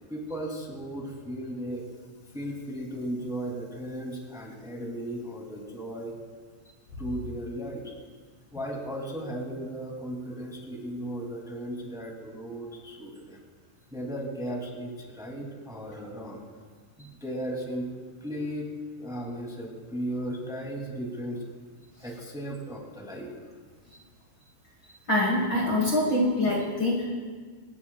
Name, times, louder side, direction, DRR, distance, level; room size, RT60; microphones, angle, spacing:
voice 1, 0.1-1.8 2.3-6.1 7.0-7.8 8.5-13.4 13.9-16.4 17.0-17.9 18.2-18.7 19.0-21.4 22.0-23.3, right 1 dB, ahead, -2 dB, 1.2 m, -36 dB
voice 2, 25.1-27.0, left 1 dB, 85° left, -3 dB, 1.0 m, -24 dB
28.0 x 11.0 x 2.4 m, 1.6 s
omnidirectional pair, 5.0 m